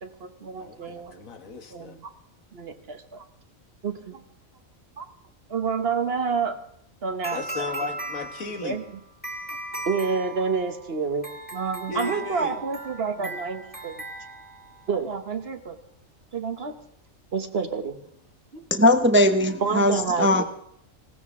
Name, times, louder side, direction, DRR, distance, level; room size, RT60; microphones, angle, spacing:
voice 1, 0.0-1.2 1.7-2.1 2.5-3.2 3.8-4.2 5.0-5.1 5.5-6.6 7.0-7.4 8.6-8.8 9.8-14.0 14.9-15.8 16.3-16.8 17.3-18.0 18.5-18.6 19.6-20.4, right 5 dB, 50° right, 1.2 m, -29 dB
voice 2, 0.6-2.0 7.3-8.8 11.9-12.6, left 4 dB, 85° left, 1.9 m, -35 dB
sound 1, 7.2-14.9, right 2 dB, 5° left, 2.0 m, -37 dB
voice 3, 18.7-20.4, left 1 dB, 15° right, 0.5 m, -19 dB
19.5 x 16.5 x 3.6 m
omnidirectional pair, 1.4 m